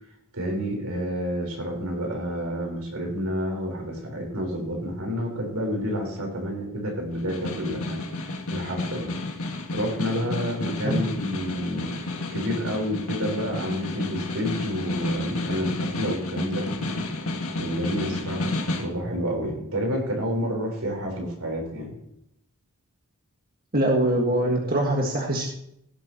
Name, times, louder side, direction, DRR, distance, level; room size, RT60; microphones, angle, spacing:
voice 1, 0.3-9.1 9.7-17.0 17.6-22.0, equal, 80° right, 1 dB, 4.1 m, -29 dB
Snare drum, 7.1-19.0, left 2 dB, 75° left, 1.9 m, -31 dB
voice 2, 23.7-25.5, right 1 dB, 45° right, 0 dB, 1.6 m, -23 dB
16.5 x 8.2 x 2.9 m, 0.77 s
head